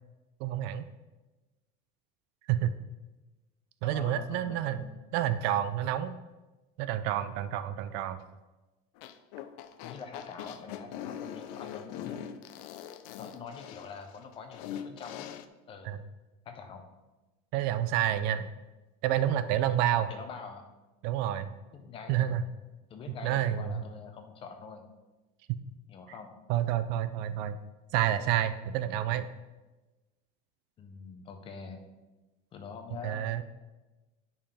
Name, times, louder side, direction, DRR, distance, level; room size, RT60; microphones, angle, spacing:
voice 1, 0.4-0.9 2.5-2.7 3.8-4.9 5.1-6.1 6.8-8.2 15.8-16.0 17.5-18.5 19.0-20.1 21.0-21.5 22.1-22.4 23.2-23.8 26.5-27.6 27.9-29.3 33.0-33.4, right 11 dB, 55° right, 11 dB, 0.4 m, -29 dB
voice 2, 3.8-4.9 9.8-12.2 13.2-15.3 15.7-15.9 16.5-16.8 20.1-20.7 21.7-22.4 22.9-24.9 25.9-26.4 30.8-31.8 32.5-33.3, left 5 dB, 25° left, 6 dB, 0.7 m, -45 dB
sound 1, 9.0-15.5, left 9 dB, 65° left, 0.5 m, -42 dB
8.9 x 5.5 x 3.4 m, 1.1 s
cardioid pair, 170°, 21 cm